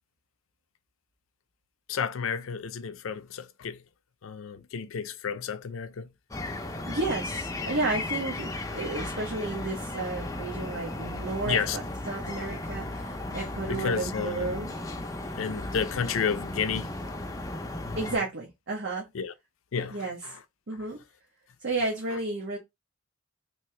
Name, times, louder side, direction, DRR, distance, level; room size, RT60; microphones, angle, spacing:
voice 1, 1.9-3.8 4.2-6.1 11.4-11.8 13.7-14.5 15.4-16.9 17.9-18.1 19.1-19.3 19.7-20.0, left 6 dB, 85° left, 0.5 m, -31 dB
sound 1, 6.3-18.2, left 2 dB, 15° left, 0.6 m, -35 dB
voice 2, 6.5-14.7 18.0-19.1 19.9-20.2 20.7-21.0 21.6-22.6, right 2 dB, 60° right, 1.0 m, -32 dB
3.3 x 2.8 x 3.2 m
head